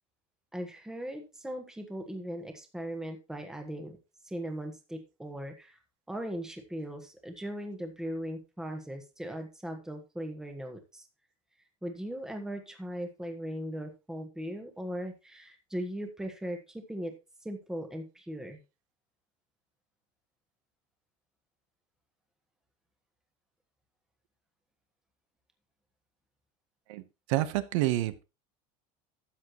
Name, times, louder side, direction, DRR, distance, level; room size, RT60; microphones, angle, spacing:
voice 1, 0.5-4.0 4.2-5.8 6.1-11.0 11.8-17.1 17.4-18.6, equal, 5° right, 4 dB, 1.4 m, -38 dB
voice 2, 27.3-28.2, right 15 dB, 70° right, 13 dB, 1.0 m, -28 dB
13.0 x 8.6 x 3.1 m, 0.28 s
cardioid pair, 165°, 17 cm